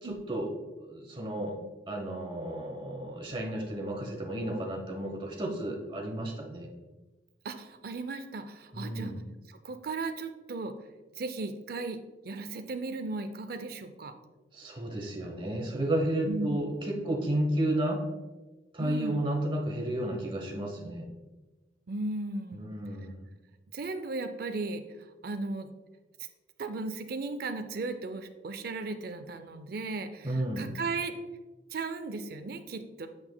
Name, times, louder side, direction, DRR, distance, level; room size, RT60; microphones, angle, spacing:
voice 1, 0.0-0.5 0.8-1.5 1.9-6.7 8.7-9.2 14.5-18.0 18.7-21.1 22.5-23.3 30.2-30.7, right 1 dB, 25° right, 1 dB, 0.9 m, -32 dB
voice 2, 7.4-9.1 9.5-10.8 11.2-12.0 12.2-14.1 16.3-16.6 18.8-19.2 21.9-22.8 23.7-24.8 25.2-25.7 26.6-31.1 31.7-33.1, right 3 dB, 50° right, 9 dB, 0.4 m, -36 dB
7.8 x 5.8 x 2.2 m, 1.2 s
head